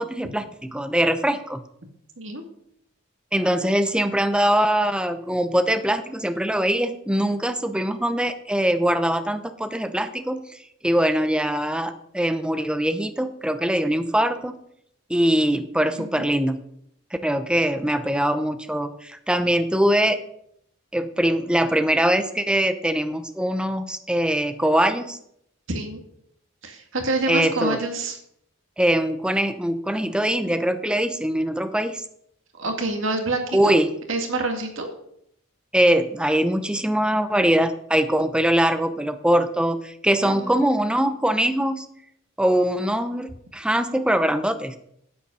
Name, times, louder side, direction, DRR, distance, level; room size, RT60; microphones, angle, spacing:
voice 1, 0.0-1.6 3.3-14.6 15.1-16.6 17.2-20.2 20.9-25.2 27.3-27.8 28.8-32.0 33.5-33.9 35.7-41.9 42.4-44.8, right 1 dB, 5° right, 9 dB, 0.8 m, -22 dB
voice 2, 25.7-26.0 26.6-28.2 32.6-33.7 34.1-34.9 40.2-40.7, right 2 dB, 70° right, 4 dB, 2.1 m, -27 dB
9.9 x 8.1 x 6.8 m, 0.71 s
head